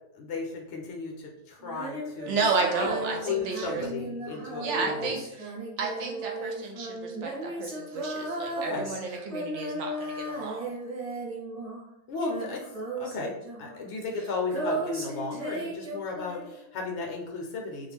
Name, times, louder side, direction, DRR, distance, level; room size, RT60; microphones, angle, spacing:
voice 1, 0.1-2.4 2.8-2.9 3.2-5.2 8.5-8.9 12.1-12.6 13.0-17.9, left 4 dB, 60° left, 0 dB, 0.9 m, -34 dB
Female singing, 1.6-11.9 12.2-16.7, right 1 dB, 30° right, 0.8 m, -36 dB
voice 2, 2.3-3.8 4.6-5.5 5.8-10.7, right 4 dB, 65° right, 1 dB, 0.8 m, -31 dB
2.4 x 2.1 x 3.3 m, 0.82 s
omnidirectional pair, 1.4 m